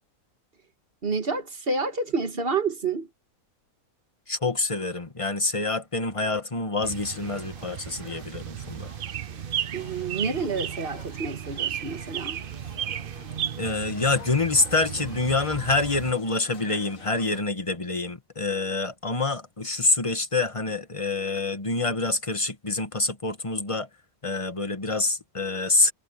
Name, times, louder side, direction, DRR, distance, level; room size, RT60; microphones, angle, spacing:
voice 1, 1.0-3.1 9.7-12.4, right 4 dB, 40° right, 2.1 m, -29 dB
voice 2, 4.3-8.9 13.6-23.9 24.2-25.9, left 3 dB, 20° left, 1.6 m, -26 dB
sound 1, 6.8-16.1, right 10 dB, 65° right, 0.5 m, -35 dB
sound 2, 6.9-17.4, left 4 dB, 65° left, 2.4 m, -48 dB
omnidirectional pair, 1.5 m